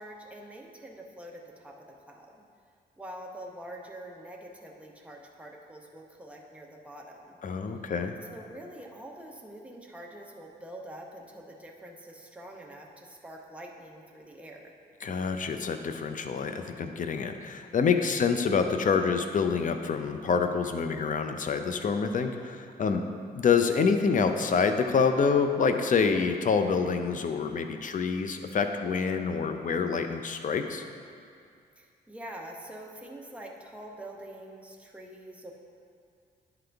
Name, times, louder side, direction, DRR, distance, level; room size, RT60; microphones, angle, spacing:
voice 1, 0.0-2.3 3.0-7.4 8.2-14.7 22.9-23.1 31.8-35.5, right 1 dB, 5° right, -1 dB, 0.9 m, -45 dB
voice 2, 7.4-8.1 15.0-23.0 23.3-30.8, left 5 dB, 50° left, 7 dB, 0.5 m, -27 dB
10.5 x 3.9 x 3.4 m, 2.3 s
cardioid pair, 75°, 18 cm